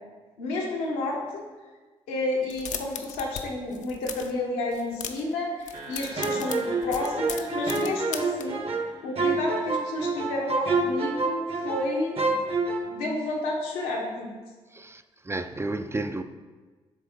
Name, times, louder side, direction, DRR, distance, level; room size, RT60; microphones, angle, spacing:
voice 1, 0.4-1.4 2.1-8.6 9.0-12.2 12.8-14.3, left 2 dB, 80° left, 1.0 m, -30 dB
sound 1, 2.4-3.4 3.7-4.3 4.7-5.3 5.6-8.4, left 7 dB, 60° left, 0.6 m, -37 dB
sound 2, 5.7-10.2, right 1 dB, 65° right, 1.4 m, -48 dB
sound 3, 6.2-11.9 12.2-12.8, right 3 dB, 40° right, 0.9 m, -27 dB
voice 2, 14.7-16.2, right 2 dB, 15° right, 0.4 m, -32 dB
7.0 x 3.4 x 4.5 m
hypercardioid pair, 45°, 15 cm